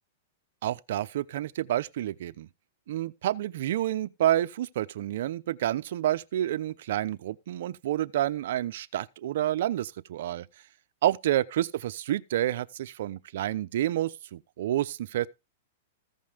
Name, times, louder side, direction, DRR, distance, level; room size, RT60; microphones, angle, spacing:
voice 1, 0.6-2.5 2.9-10.5 11.0-15.3, right 12 dB, 65° right, 0.8 m, -29 dB
15.0 x 5.4 x 5.1 m
hypercardioid pair, 140°, 0 cm